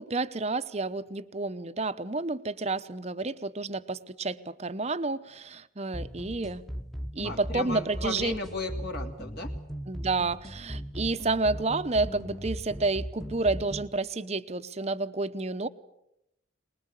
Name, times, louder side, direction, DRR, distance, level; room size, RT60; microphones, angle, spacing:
voice 1, 0.0-6.6 7.1-8.4 9.9-15.7, right 3 dB, 30° right, 12 dB, 0.9 m, -30 dB
sound 1, 5.9-14.0, equal, ahead, 1.1 m, -38 dB
voice 2, 7.2-9.5, left 2 dB, 50° left, 2 dB, 2.7 m, -35 dB
23.5 x 21.0 x 8.3 m, 0.81 s
head